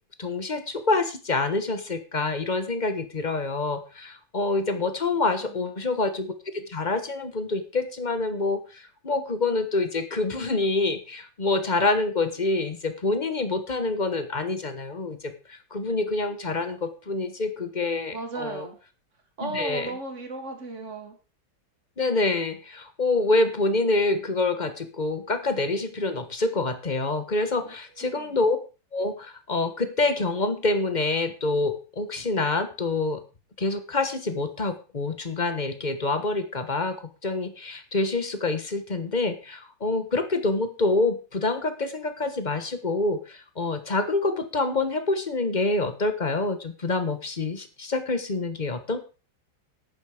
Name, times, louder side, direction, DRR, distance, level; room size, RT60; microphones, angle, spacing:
voice 1, 0.2-18.6 19.4-19.9 22.0-28.6 28.9-33.2 33.6-37.0 37.2-49.0, left 3 dB, 25° left, 9 dB, 1.3 m, -26 dB
voice 2, 5.4-5.9 18.1-18.8 19.4-21.2 27.6-28.4, right 3 dB, 35° right, 4 dB, 2.8 m, -36 dB
10.5 x 9.5 x 4.9 m, 0.33 s
omnidirectional pair, 2.2 m